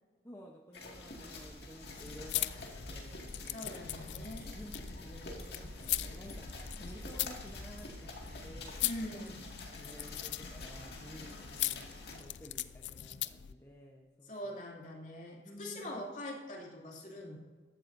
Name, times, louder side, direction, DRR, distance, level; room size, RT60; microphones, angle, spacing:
voice 1, 0.2-3.8 4.5-8.8 9.1-9.3 9.7-14.5 15.4-16.1, equal, 15° left, -1 dB, 0.9 m, -53 dB
sound 1, 0.7-12.2, left 2 dB, 60° left, 2.0 m, -47 dB
sound 2, 1.9-13.5, left 14 dB, 80° left, 0.4 m, -41 dB
voice 2, 3.5-4.6 8.8-9.4 14.2-17.4, left 1 dB, 45° left, -2 dB, 2.6 m, -43 dB
15.0 x 12.0 x 2.6 m, 1.4 s
head